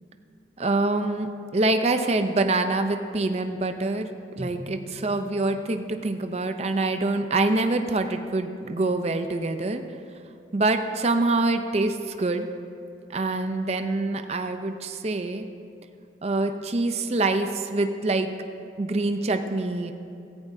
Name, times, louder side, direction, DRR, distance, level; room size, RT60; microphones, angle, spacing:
voice 1, 0.6-4.1 4.4-9.8 10.5-12.5 13.1-15.5 16.2-18.3 18.8-19.9, right 2 dB, 35° right, 7 dB, 0.5 m, -25 dB
Drum, 4.4-6.6, left 1 dB, 65° left, 3.0 m, -42 dB
16.0 x 14.5 x 2.7 m, 2.5 s
head